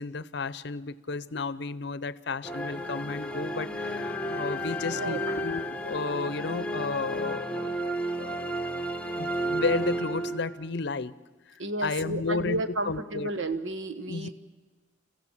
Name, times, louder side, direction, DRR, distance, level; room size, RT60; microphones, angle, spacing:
voice 1, 0.0-7.5 8.2-8.5 9.2-11.1 11.5-13.3 14.1-14.3, left 4 dB, 60° left, 17 dB, 0.6 m, -33 dB
sound 1, 2.4-10.8, right 1 dB, 5° left, 0.9 m, -32 dB
voice 2, 4.9-5.4 11.6-14.3, right 1 dB, 80° right, 9 dB, 1.3 m, -32 dB
29.5 x 15.5 x 7.4 m, 1.3 s
head